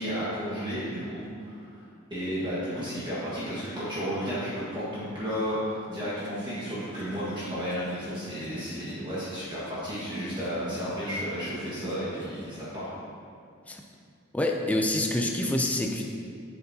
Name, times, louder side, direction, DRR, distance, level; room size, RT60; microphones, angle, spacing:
voice 1, 0.0-1.7 2.1-12.9, equal, 25° right, -10 dB, 1.5 m, -33 dB
sound 1, 5.9-12.6, right 1 dB, 60° right, 0.8 m, -44 dB
voice 2, 14.3-16.0, left 1 dB, 5° left, 1 dB, 0.4 m, -27 dB
7.8 x 7.8 x 2.8 m, 2.3 s
head